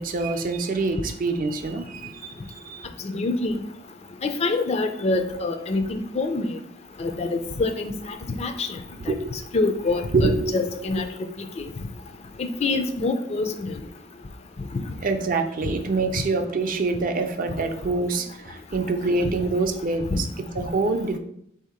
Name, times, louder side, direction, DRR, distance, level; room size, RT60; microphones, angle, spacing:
voice 1, 0.0-2.9 9.1-9.3 10.1-10.7 11.0-11.1 15.0-21.2, right 3 dB, 45° right, 6 dB, 0.5 m, -26 dB
voice 2, 3.0-3.6 4.2-6.5 7.0-7.9 8.4-8.8 9.1-11.1 11.6-11.7 12.4-13.7 20.1-20.2, left 3 dB, 35° left, 7 dB, 0.4 m, -25 dB
3.7 x 2.7 x 4.8 m, 0.71 s
head